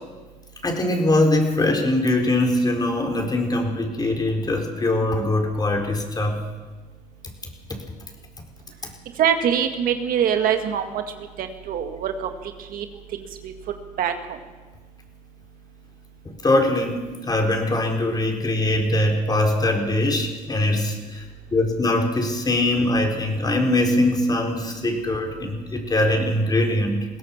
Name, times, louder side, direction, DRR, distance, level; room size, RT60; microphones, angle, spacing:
voice 1, 0.6-6.4 16.2-21.2 21.5-27.1, left 1 dB, 25° left, 2 dB, 4.5 m, -22 dB
voice 2, 9.2-11.0 11.4-12.1 12.7-12.9 13.4-13.5 14.0-14.1, right 8 dB, 75° right, 6 dB, 2.0 m, -23 dB
21.0 x 17.5 x 7.3 m, 1.3 s
cardioid pair, 95°, 15 cm